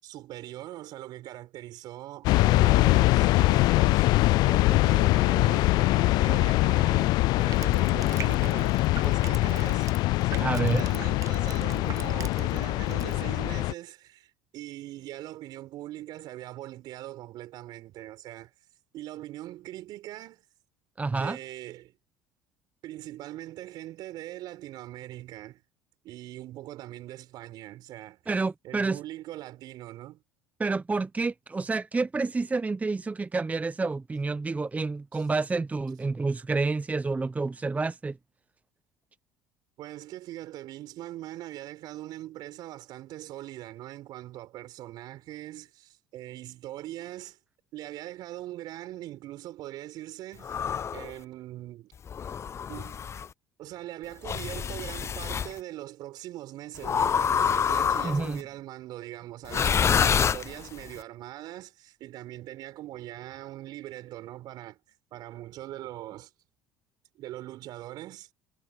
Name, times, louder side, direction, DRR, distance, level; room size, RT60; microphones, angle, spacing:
voice 1, 0.0-4.1 4.4-9.9 10.2-18.5 18.9-20.4 21.1-21.9 22.8-25.6 26.0-28.2 28.6-30.2 35.1-35.2 39.8-47.4 47.7-50.7 50.9-51.9 52.7-53.0 53.6-64.8 65.1-66.3 67.2-68.3, right 15 dB, 60° right, 5.3 m, -41 dB
sound 1, 2.2-13.7, left 19 dB, 60° left, 0.3 m, -23 dB
Crushing, 7.4-12.6 12.9-13.1, right 9 dB, 45° right, 0.9 m, -42 dB
voice 2, 10.4-10.9 21.0-21.4 28.3-29.0 30.6-38.2 58.0-58.4, right 3 dB, 20° right, 0.9 m, -29 dB
sound 2, 50.4-51.1 52.1-53.3 54.2-55.5 56.8-58.4 59.4-60.9, left 7 dB, 35° left, 0.8 m, -27 dB
hypercardioid pair, 70°, 8 cm